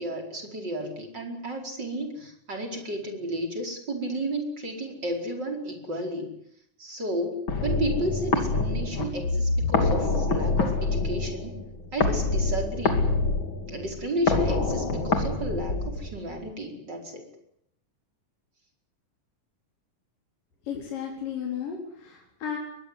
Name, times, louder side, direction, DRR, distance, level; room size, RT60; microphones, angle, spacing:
voice 1, 0.0-6.3 6.8-11.5 11.9-13.0 13.7-17.3, right 1 dB, 30° right, 3 dB, 5.3 m, -32 dB
sound 1, 7.5-16.4, left 3 dB, 40° left, 3.2 m, -26 dB
voice 2, 20.7-22.6, left 8 dB, 80° left, 0 dB, 5.6 m, -34 dB
22.5 x 19.5 x 9.7 m, 0.75 s
omnidirectional pair, 3.9 m